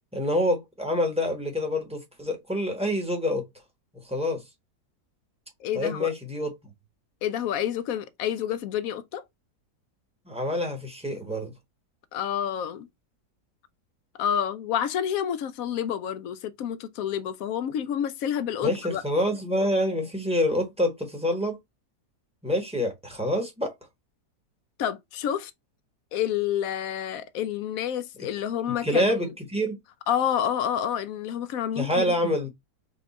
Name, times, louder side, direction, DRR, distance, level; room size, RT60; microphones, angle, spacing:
voice 1, 0.1-3.5 4.0-4.4 5.7-6.5 10.3-11.5 18.6-21.6 22.4-23.7 28.8-29.8 31.8-32.5, left 1 dB, 5° right, 0.9 m, -26 dB
voice 2, 5.6-6.1 7.2-9.2 12.1-12.9 14.2-19.0 24.8-25.5 26.1-29.1 30.1-32.3, left 9 dB, 70° left, 0.9 m, -29 dB
4.3 x 2.4 x 4.1 m
omnidirectional pair, 1.7 m